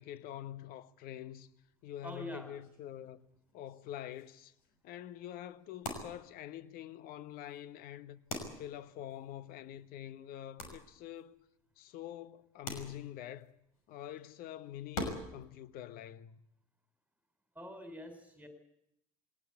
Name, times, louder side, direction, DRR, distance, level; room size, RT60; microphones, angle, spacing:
voice 1, 0.0-1.5 1.8-3.2 3.5-4.5 4.8-8.2 8.6-11.4 11.8-13.5 13.9-16.4, left 12 dB, 55° left, 1.3 m, -46 dB
sound 1, 1.4-15.5, left 2 dB, 70° left, 5.7 m, -47 dB
voice 2, 2.0-2.5 17.5-18.5, equal, 5° right, 4.3 m, -45 dB
21.5 x 18.5 x 8.5 m
hypercardioid pair, 75°, 19 cm